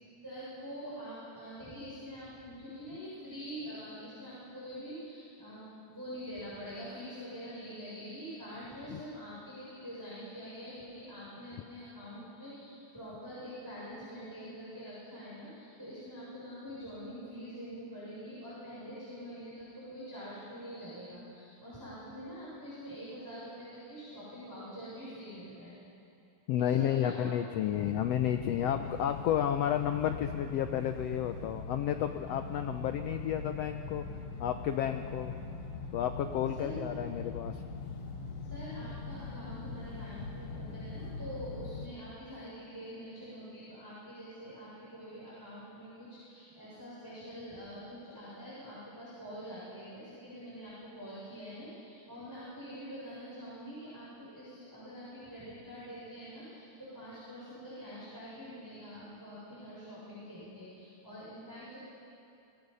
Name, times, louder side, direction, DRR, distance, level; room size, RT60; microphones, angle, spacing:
voice 1, 0.2-25.8 26.6-27.3 36.6-36.9 38.5-61.8, equal, 5° right, -10 dB, 6.6 m, -45 dB
voice 2, 26.5-34.1 34.4-35.3 35.9-37.6, left 10 dB, 85° left, 8 dB, 1.4 m, -31 dB
sound 1, 27.7-41.9, left 4 dB, 55° left, 2.4 m, -41 dB
28.5 x 19.0 x 5.5 m, 2.6 s
omnidirectional pair, 3.7 m